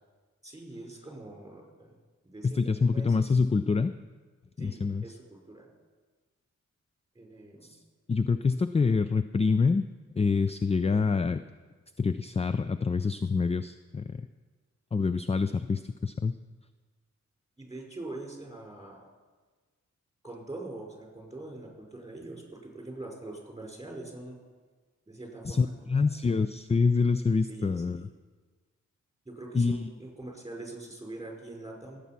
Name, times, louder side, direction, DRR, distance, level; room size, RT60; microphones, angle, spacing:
voice 1, 0.4-2.0 2.2-3.4 4.6-5.7 7.1-7.7 17.6-19.0 20.2-24.4 25.1-26.1 27.5-28.0 29.2-32.0, right 2 dB, 10° right, 0 dB, 4.8 m, -43 dB
voice 2, 2.4-4.0 4.6-5.1 7.6-7.8 8.1-9.9 10.2-11.4 12.0-14.2 14.9-16.4 25.4-28.1 29.5-29.9, left 4 dB, 20° left, 12 dB, 0.4 m, -26 dB
18.5 x 8.4 x 5.9 m, 1.4 s
cardioid pair, 75°, 30 cm